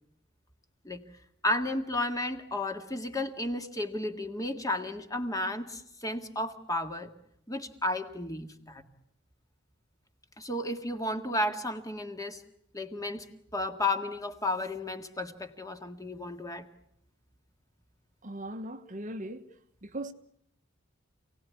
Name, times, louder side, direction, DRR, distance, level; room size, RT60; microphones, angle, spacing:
voice 1, 1.4-7.1 7.5-8.8 10.4-12.4 12.7-16.7, left 1 dB, 15° left, 1.9 m, -33 dB
voice 2, 18.2-19.5 19.8-20.1, right 1 dB, 40° right, 1.1 m, -38 dB
28.5 x 18.0 x 9.7 m
head